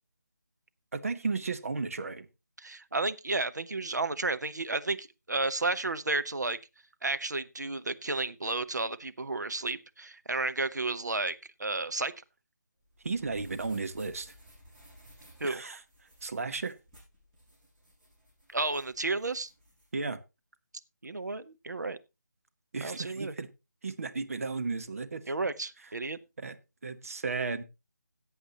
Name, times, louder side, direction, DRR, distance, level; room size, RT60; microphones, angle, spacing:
voice 1, 0.9-2.3 13.0-14.3 15.4-15.8 16.2-16.7 19.9-20.2 22.7-23.5 23.8-25.2 26.4-26.6 26.8-27.6, right 4 dB, 50° right, 1.2 m, -34 dB
voice 2, 2.6-6.6 7.0-12.1 15.4-15.6 18.5-19.5 21.0-22.0 22.8-23.3 25.3-26.2, right 3 dB, 70° right, 1.0 m, -32 dB
sound 1, 12.8-19.9, equal, 15° right, 6.6 m, -58 dB
17.5 x 7.9 x 2.9 m
figure-of-eight pair, 155°, 10 cm